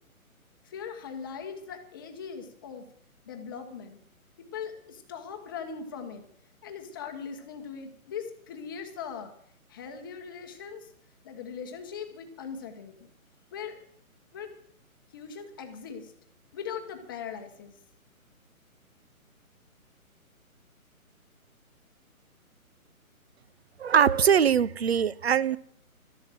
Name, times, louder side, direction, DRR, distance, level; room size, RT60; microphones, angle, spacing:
voice 1, 0.6-2.9 3.3-4.0 4.4-6.3 6.6-9.3 9.7-10.9 11.2-13.1 13.5-13.8 14.3-14.5 15.1-16.1 16.5-17.7, left 6 dB, 15° left, 1.0 m, -40 dB
voice 2, 23.8-25.6, right 8 dB, 45° right, 0.6 m, -22 dB
13.0 x 11.0 x 7.6 m
hypercardioid pair, 160°, 43 cm